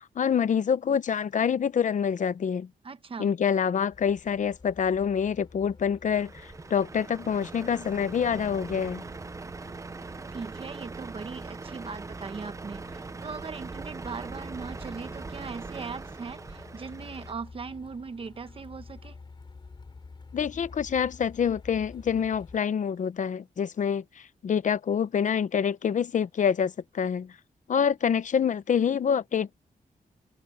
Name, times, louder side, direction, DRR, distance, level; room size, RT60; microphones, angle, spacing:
voice 1, 0.0-2.7 3.2-9.0 20.3-27.3 27.7-29.5, left 7 dB, 55° left, 0.8 m, -26 dB
voice 2, 2.8-3.3 10.3-19.2, right 5 dB, 35° right, 1.0 m, -39 dB
Truck, 3.9-22.6, left 4 dB, 30° left, 3.6 m, -50 dB
Truck 2, 6.1-17.3, right 3 dB, 20° right, 0.5 m, -41 dB
wide cardioid pair, 180°, 16 cm